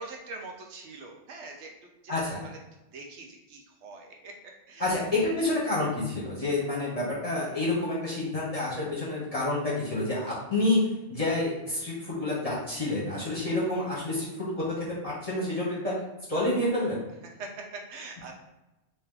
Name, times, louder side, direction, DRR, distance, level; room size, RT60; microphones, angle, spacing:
voice 1, 0.0-1.7 2.0-2.6 2.9-4.3 4.7-5.0 13.3-13.4 17.4-18.3, right 3 dB, 85° right, 1 dB, 1.0 m, -43 dB
voice 2, 2.1-2.5 4.8-15.9 16.3-17.0, left 2 dB, 35° left, -7 dB, 1.0 m, -28 dB
2.9 x 2.9 x 3.6 m, 1.0 s
omnidirectional pair, 1.2 m